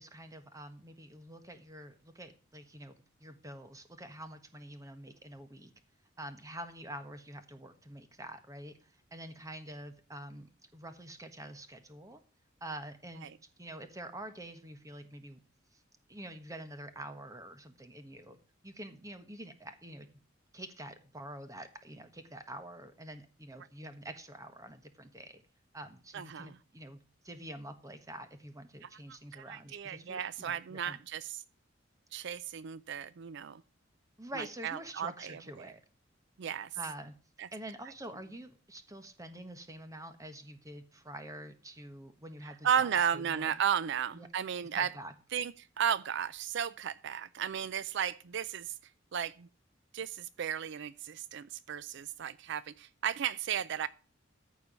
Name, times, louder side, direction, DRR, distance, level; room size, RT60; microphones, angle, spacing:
voice 1, 0.0-5.7 6.2-12.2 12.6-13.3 13.6-15.4 15.7-15.8 16.1-18.4 18.6-20.1 20.5-25.4 25.7-31.0 34.2-35.8 36.7-37.1 37.5-43.6 44.1-44.3 44.7-45.1, right 1 dB, 15° right, 1.3 m, -47 dB
voice 2, 26.1-26.5 29.3-31.4 32.1-33.6 34.6-35.7 36.4-36.7 37.4-37.5 42.6-44.9 45.3-48.7 49.1-49.5 49.9-53.9, right 8 dB, 65° right, 0.4 m, -34 dB
14.0 x 4.7 x 6.9 m
head